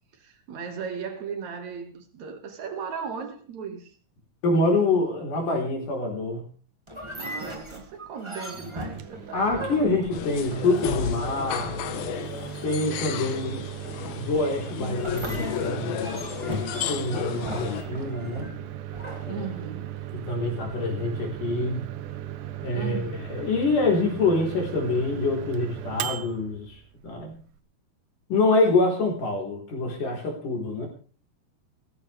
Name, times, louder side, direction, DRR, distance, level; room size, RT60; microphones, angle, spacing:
voice 1, 0.2-3.9 7.2-10.0 19.3-20.0 22.7-23.3, right 6 dB, 55° right, 2.8 m, -37 dB
voice 2, 4.4-6.5 9.3-11.8 12.6-13.7 14.2-16.2 16.7-18.5 19.3-19.5 20.1-21.9 22.6-27.4 28.3-30.9, left 2 dB, 60° left, 5.3 m, -26 dB
sound 1, 6.9-11.2 14.9-20.0, equal, 10° right, 1.3 m, -38 dB
Microwave oven, 8.8-27.6, right 12 dB, 70° right, 2.1 m, -38 dB
sound 2, 10.1-17.8, left 10 dB, 80° left, 2.9 m, -33 dB
17.5 x 15.0 x 3.4 m
omnidirectional pair, 4.3 m